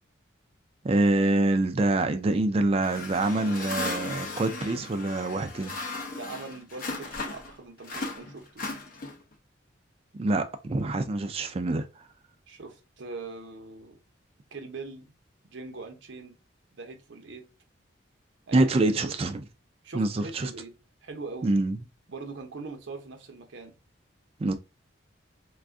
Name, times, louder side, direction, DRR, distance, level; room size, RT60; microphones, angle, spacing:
voice 1, 0.8-5.8 10.2-11.9 18.5-19.4 19.9-20.5 21.4-21.8 24.4-24.5, right 2 dB, 30° right, 0.3 m, -25 dB
sound 1, 2.8-7.5 7.8-9.3, left 2 dB, 45° left, 0.6 m, -36 dB
voice 2, 6.1-8.6 12.5-14.0 14.5-15.1 15.5-16.4 16.7-17.5 18.5-19.2 19.8-20.7 21.0-21.5 22.1-23.8, right 3 dB, 70° right, 0.7 m, -42 dB
2.5 x 2.4 x 3.5 m
head